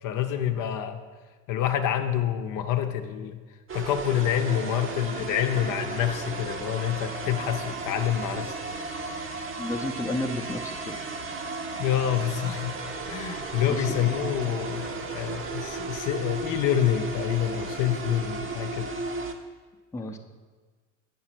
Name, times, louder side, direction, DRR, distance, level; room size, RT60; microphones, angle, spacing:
voice 1, 0.0-1.0 1.5-3.4 3.7-8.6 11.8-12.7 13.1-18.9, left 10 dB, 50° left, 6 dB, 0.6 m, -27 dB
sound 1, 3.7-19.3, right 4 dB, 30° right, 0.8 m, -35 dB
sound 2, 5.5-15.4, left 1 dB, 85° right, 1.6 m, -50 dB
voice 2, 9.6-11.0 11.3-11.4 13.7-13.9 19.9-20.2, left 1 dB, 5° left, 3 dB, 0.6 m, -32 dB
8.5 x 5.4 x 4.4 m, 1.4 s
hypercardioid pair, 70°, 42 cm